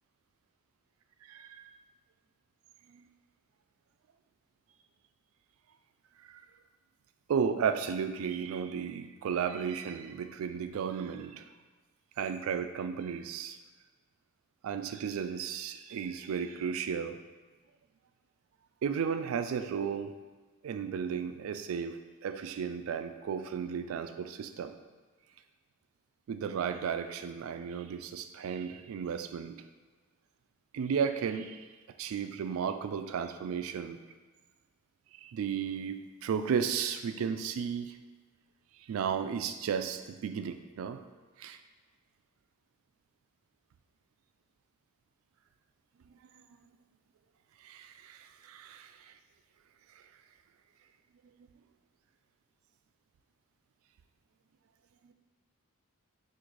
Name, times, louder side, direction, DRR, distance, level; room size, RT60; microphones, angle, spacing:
voice 1, 1.2-1.7 2.9-3.1 6.2-6.4 7.3-11.5 12.2-13.6 14.6-17.2 18.8-20.1 20.6-24.7 26.3-29.6 30.7-31.7 32.0-34.0 35.2-38.0 38.9-41.0 41.4-41.6 47.6-49.1 55.0-55.1, right 7 dB, 70° right, 9 dB, 0.3 m, -34 dB
3.8 x 2.5 x 4.6 m, 1.3 s
head